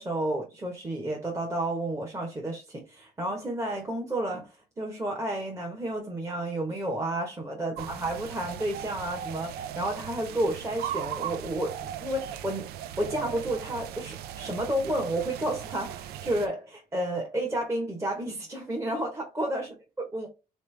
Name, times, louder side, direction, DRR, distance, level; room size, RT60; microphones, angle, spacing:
voice 1, 0.0-12.7 13.0-19.7 20.0-20.3, right 1 dB, 20° right, 1.0 m, -31 dB
sound 1, 7.8-16.5, right 10 dB, 80° right, 0.4 m, -38 dB
3.5 x 3.2 x 3.2 m
cardioid pair, 130°, 16 cm